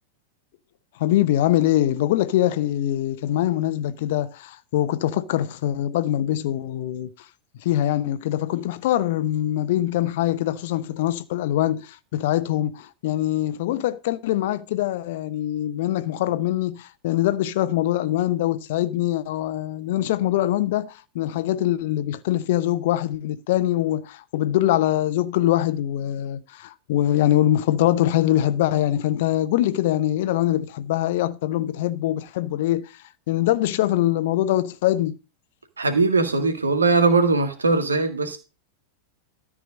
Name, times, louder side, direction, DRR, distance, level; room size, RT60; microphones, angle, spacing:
voice 1, 1.0-7.1 7.6-32.9 33.3-35.2, left 13 dB, 50° left, 0.7 m, -23 dB
voice 2, 35.8-38.4, right 3 dB, 75° right, 1.9 m, -20 dB
13.0 x 4.8 x 6.3 m
figure-of-eight pair, 90°, 0 cm